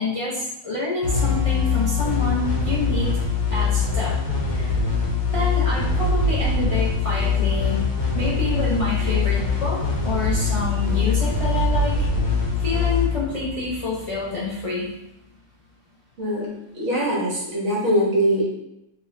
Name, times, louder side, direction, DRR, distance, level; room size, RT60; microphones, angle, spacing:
voice 1, 0.0-3.1 3.5-4.1 4.5-4.8 5.3-7.8 8.1-12.0 12.6-14.9, left 3 dB, 55° left, -7 dB, 0.4 m, -27 dB
sound 1, 1.0-14.3, left 4 dB, 75° left, 1.3 m, -23 dB
voice 2, 16.7-18.5, equal, 55° right, -5 dB, 1.3 m, -22 dB
3.3 x 2.4 x 3.2 m, 0.85 s
omnidirectional pair, 1.5 m